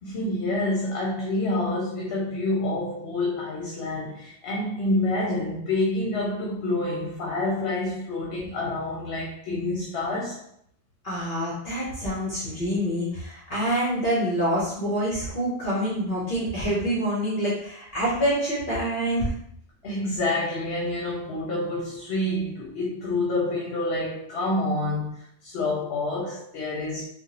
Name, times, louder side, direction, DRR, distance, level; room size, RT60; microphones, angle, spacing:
voice 1, 0.0-10.4 19.8-27.1, left 2 dB, 75° left, -4 dB, 0.9 m, -28 dB
voice 2, 11.0-19.3, equal, 55° left, -7 dB, 1.0 m, -26 dB
3.4 x 2.1 x 2.9 m, 0.70 s
omnidirectional pair, 1.1 m